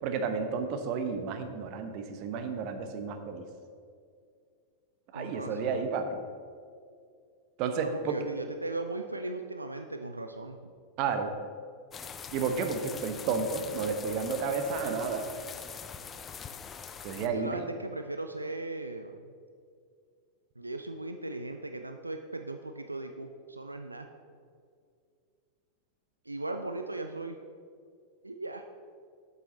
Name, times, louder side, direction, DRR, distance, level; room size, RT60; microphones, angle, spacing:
voice 1, 0.0-3.4 5.1-6.2 7.6-8.2 11.0-11.3 12.3-15.3 17.0-17.7, right 5 dB, 45° right, 7 dB, 0.9 m, -32 dB
voice 2, 5.1-5.9 7.8-10.7 17.2-19.3 20.6-24.1 26.3-27.4 28.2-28.6, right 2 dB, 85° right, 6 dB, 0.4 m, -38 dB
sound 1, 11.9-17.3, left 6 dB, 20° left, 0.5 m, -43 dB
8.0 x 7.9 x 4.1 m, 2.2 s
figure-of-eight pair, 90°, 0 cm